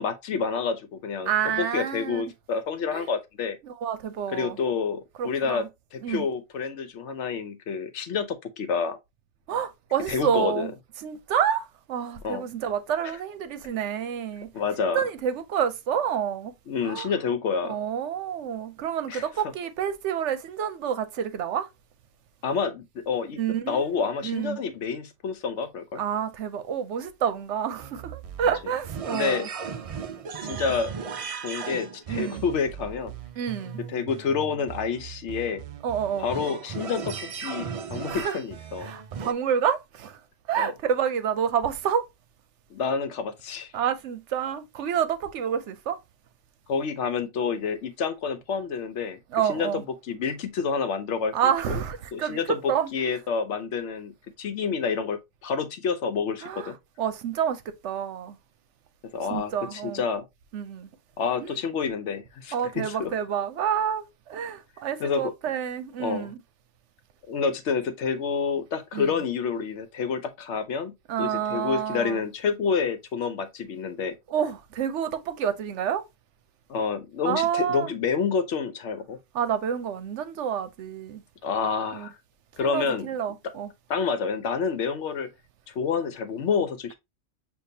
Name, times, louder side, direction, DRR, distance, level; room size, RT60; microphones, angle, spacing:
voice 1, 0.0-1.3 1.6-3.6 4.3-5.7 5.9-9.0 10.1-10.7 12.2-12.5 14.5-15.0 16.7-17.8 19.1-19.3 22.4-23.4 23.7-26.0 29.1-29.5 30.4-30.9 31.4-33.1 33.9-35.6 36.2-38.9 40.6-40.7 42.7-43.7 46.7-49.2 49.4-51.3 51.7-51.8 52.1-56.8 59.0-60.2 61.2-63.1 65.0-65.3 66.0-66.3 67.3-74.1 76.7-79.2 81.4-82.2 82.6-83.1 83.9-85.3 85.7-86.9, left 5 dB, 75° left, 1.0 m, -28 dB
voice 2, 1.2-2.2 2.9-3.1 3.6-4.6 5.2-5.7 6.0-6.3 9.5-10.7 11.0-14.5 14.8-16.5 16.8-17.1 17.7-21.7 23.4-24.6 26.0-29.5 32.1-32.4 33.4-33.8 35.8-36.3 38.1-38.4 38.8-40.2 40.5-42.1 43.7-46.0 49.3-49.8 51.3-52.9 56.4-56.7 57.0-58.4 59.3-60.0 60.5-60.9 61.4-61.6 62.5-66.4 68.9-69.1 71.1-72.2 74.3-76.0 77.2-77.9 79.3-81.2 81.9-82.1 82.6-83.7, right 8 dB, 75° right, 0.9 m, -28 dB
sound 1, 27.8-39.3, right 6 dB, 55° right, 0.4 m, -37 dB
6.7 x 2.5 x 2.7 m
omnidirectional pair, 1.2 m